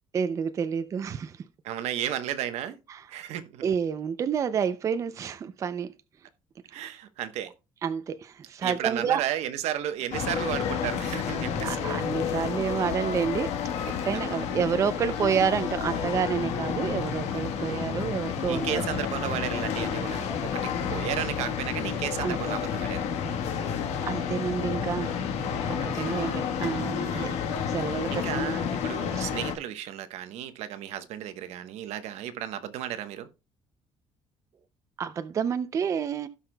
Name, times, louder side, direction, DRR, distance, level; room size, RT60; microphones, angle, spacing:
voice 1, 0.1-1.4 2.9-3.0 3.6-5.9 6.7-6.9 7.8-9.2 11.6-13.5 14.0-18.7 22.2-22.4 24.1-25.2 25.7-27.3 27.7-28.5 35.0-36.3, right 7 dB, 30° right, 0.4 m, -29 dB
voice 2, 1.6-2.8 3.1-3.6 6.7-7.5 8.6-11.9 14.1-14.4 17.5-17.8 18.5-23.0 25.8-26.4 27.0-27.4 27.9-33.3, right 11 dB, 80° right, 1.0 m, -34 dB
sound 1, 10.1-29.5, left 7 dB, 80° left, 1.3 m, -30 dB
16.5 x 5.7 x 2.2 m
cardioid pair, 175°, 11 cm